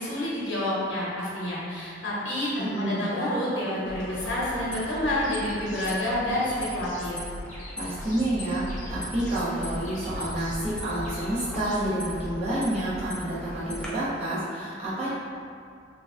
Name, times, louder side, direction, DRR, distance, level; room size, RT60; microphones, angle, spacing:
voice 1, 0.0-7.2, left 1 dB, 75° left, -7 dB, 0.9 m, -28 dB
voice 2, 2.6-3.1 7.8-8.6 8.9-15.1, right 1 dB, 35° right, -11 dB, 1.0 m, -29 dB
sound 1, 3.8-13.9, equal, 5° left, 0.5 m, -38 dB
sound 2, 5.1-6.0 6.3-7.1 7.5-8.3 8.7-9.5 9.8-10.7 11.0-11.9, left 1 dB, 40° left, 0.8 m, -46 dB
2.9 x 2.3 x 3.5 m, 2.3 s
head